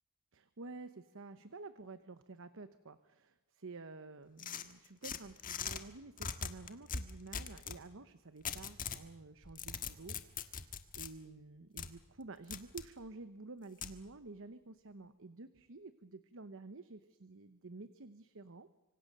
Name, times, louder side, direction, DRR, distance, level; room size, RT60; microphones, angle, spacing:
voice 1, 0.3-18.7, right 3 dB, 60° right, 12 dB, 1.0 m, -51 dB
sound 1, 4.4-5.8 6.2-7.8 8.4-9.0 9.4-11.1 11.8-11.9 12.5-12.9 13.8-13.9, left 6 dB, 40° left, 1.5 m, -41 dB
25.5 x 25.0 x 6.7 m, 1.0 s
head